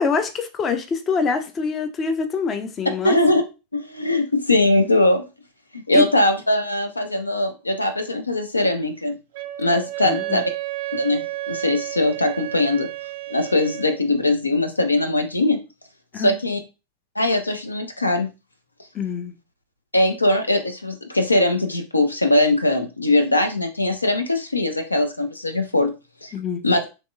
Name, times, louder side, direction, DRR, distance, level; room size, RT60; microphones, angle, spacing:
voice 1, 0.0-3.2 5.9-6.0 10.0-10.4 16.1-16.3 18.9-19.3 26.3-26.6, left 5 dB, 25° left, 0.4 m, -25 dB
voice 2, 3.0-3.4 3.7-5.3 5.7-9.2 9.6-10.4 10.9-12.9 13.3-15.6 16.2-16.6 17.2-18.3 19.9-25.9 26.2-26.3 26.6-26.8, left 2 dB, 80° left, 0.4 m, -21 dB
Wind instrument woodwind instrument, 9.3-14.0, right 17 dB, 50° right, 0.3 m, -31 dB
2.9 x 2.8 x 2.2 m
figure-of-eight pair, 90°, 0 cm